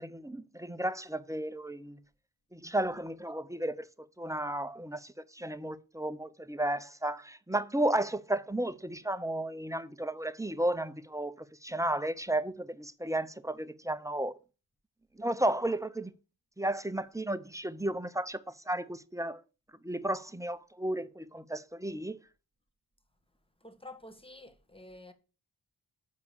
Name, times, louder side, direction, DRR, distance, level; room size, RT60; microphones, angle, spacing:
voice 1, 0.0-2.0 2.5-3.9 4.2-14.4 15.2-16.1 16.6-18.4 18.7-19.4 19.8-22.2, right 1 dB, 5° right, 0.7 m, -33 dB
voice 2, 23.6-25.1, left 2 dB, 10° left, 1.5 m, -49 dB
7.1 x 4.6 x 7.0 m
cardioid pair, 45°, 43 cm